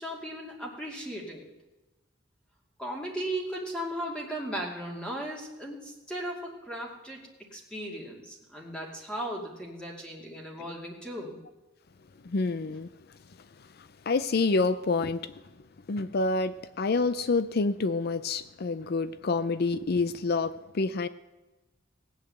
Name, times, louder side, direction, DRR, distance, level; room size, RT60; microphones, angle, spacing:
voice 1, 0.0-1.4 2.8-7.2 7.5-11.4, right 1 dB, 5° left, -2 dB, 2.6 m, -36 dB
voice 2, 12.2-12.9 13.8-15.2 15.9-21.1, left 3 dB, 55° left, 14 dB, 0.5 m, -28 dB
18.5 x 8.3 x 7.9 m, 1.1 s
head